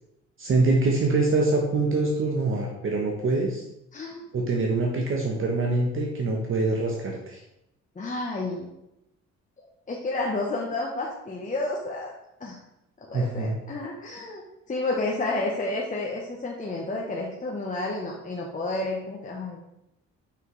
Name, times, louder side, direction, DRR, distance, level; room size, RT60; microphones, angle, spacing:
voice 1, 0.4-3.6 4.3-7.4 13.1-13.6, right 3 dB, 45° right, 0 dB, 1.0 m, -24 dB
voice 2, 3.9-4.2 8.0-8.7 9.9-12.1 12.4-12.6 13.1-14.4 14.7-19.6, left 2 dB, 25° left, -2 dB, 1.0 m, -30 dB
5.7 x 5.6 x 3.2 m, 0.85 s
cardioid pair, 90°, 30 cm